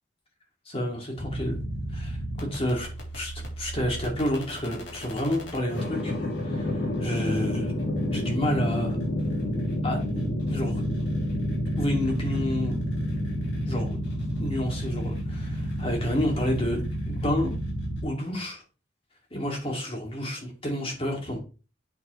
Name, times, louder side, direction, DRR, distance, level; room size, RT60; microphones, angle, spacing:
voice 1, 0.7-1.6 1.9-2.9 3.1-6.1 6.4-7.7 8.1-9.0 9.8-10.8 11.8-12.8 13.7-14.0 14.4-17.6 18.0-18.6 19.3-21.4, equal, 30° left, 1 dB, 2.4 m, -30 dB
sound 1, 1.2-18.0, equal, 70° left, 3.2 m, -30 dB
8.0 x 7.1 x 3.2 m, 0.34 s
head